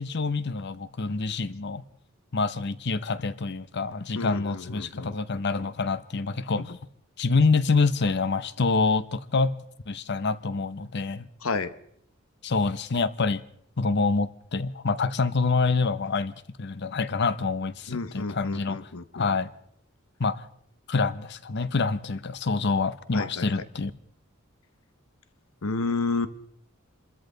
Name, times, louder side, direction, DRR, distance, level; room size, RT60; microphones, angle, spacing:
voice 1, 0.0-1.8 2.3-6.8 7.2-9.6 9.9-11.3 12.4-13.4 13.8-19.5 20.2-20.4 20.9-23.9, left 4 dB, 55° left, 0.8 m, -26 dB
voice 2, 4.1-5.4 11.4-11.7 17.9-19.3 23.1-23.5 25.6-26.3, left 3 dB, 85° left, 1.0 m, -31 dB
27.0 x 13.5 x 3.9 m
head